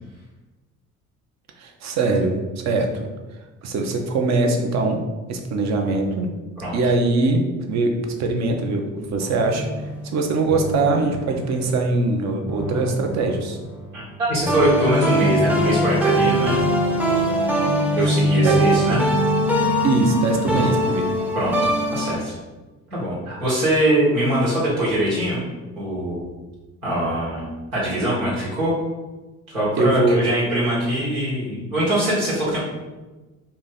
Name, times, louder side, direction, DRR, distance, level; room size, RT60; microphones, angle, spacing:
voice 1, 1.6-3.1 3.6-5.0 5.3-6.3 6.7-9.7 10.1-13.6 18.0-18.1 18.4-18.6 19.8-21.1 29.8-30.2, right 3 dB, 40° right, 3 dB, 0.7 m, -22 dB
sound 1, 9.2-11.8 12.5-14.0 14.5-22.2, right 1 dB, 5° right, 0.6 m, -22 dB
voice 2, 14.3-16.6 18.0-19.0 21.3-21.6 21.9-22.3 22.9-25.4 25.7-26.3 26.8-28.7 29.5-32.6, right 1 dB, 80° right, -8 dB, 1.3 m, -22 dB
2.9 x 2.6 x 4.1 m, 1.2 s
figure-of-eight pair, 50°, 42 cm